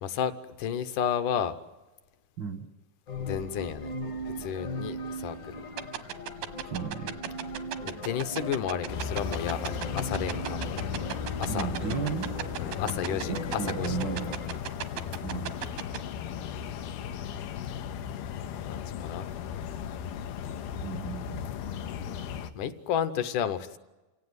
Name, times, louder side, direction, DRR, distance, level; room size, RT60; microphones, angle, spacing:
voice 1, 0.0-1.5 3.2-3.9 4.3-5.6 7.9-10.8 11.4-11.7 12.6-14.0 14.5-14.7 18.7-19.3 22.6-23.8, left 8 dB, 70° left, 11 dB, 2.2 m, -32 dB
sound 1, 3.1-14.5, left 1 dB, 55° left, 1.2 m, -38 dB
sound 2, 5.8-16.0, right 13 dB, 85° right, 2.8 m, -34 dB
voice 2, 6.6-7.1 11.5-12.3 13.3-14.4 15.2-15.5 20.8-21.5, right 6 dB, 65° right, 6 dB, 1.1 m, -34 dB
sound 3, 8.9-22.5, left 7 dB, 90° left, 2.8 m, -36 dB
28.0 x 17.5 x 9.6 m, 1.1 s
omnidirectional pair, 4.1 m